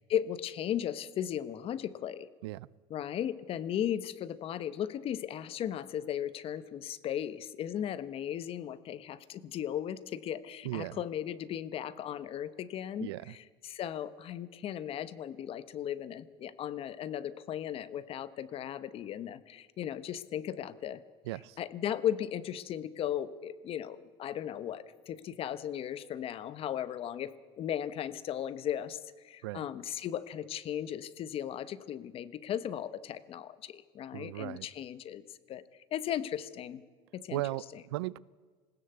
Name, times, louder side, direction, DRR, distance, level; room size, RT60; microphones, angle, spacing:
voice 1, 0.1-2.3 2.9-21.0 21.6-35.2 35.5-35.6 35.9-36.8 37.1-37.4 37.7-37.8, left 10 dB, 45° left, 15 dB, 1.1 m, -36 dB
voice 2, 10.6-11.0 13.0-13.3 21.3-21.6 29.4-29.6 34.1-34.7 37.3-38.2, right 18 dB, 80° right, 22 dB, 0.5 m, -37 dB
20.5 x 16.5 x 8.1 m, 1.5 s
supercardioid pair, 100°, 13 cm